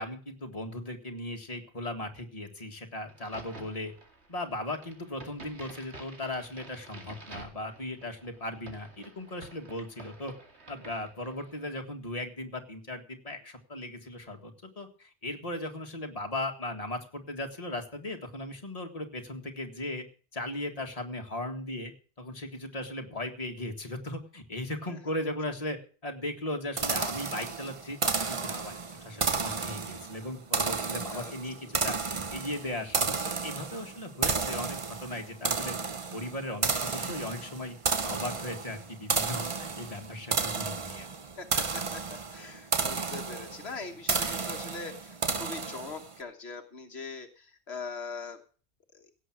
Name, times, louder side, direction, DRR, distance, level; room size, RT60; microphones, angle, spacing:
voice 1, 0.0-3.9 4.3-10.3 10.7-20.0 20.3-21.9 22.2-25.8 26.0-32.0 32.3-35.8 36.1-37.8 38.0-41.1, left 1 dB, 35° left, 3 dB, 2.0 m, -37 dB
Crack, 3.1-11.6, right 2 dB, 75° right, 2.6 m, -50 dB
sound 1, 26.8-46.1, right 4 dB, 30° right, 0.8 m, -32 dB
voice 2, 41.4-41.8 42.3-48.4 48.9-49.1, left 4 dB, 70° left, 5 dB, 1.6 m, -41 dB
17.0 x 7.6 x 6.1 m, 0.40 s
omnidirectional pair, 1.1 m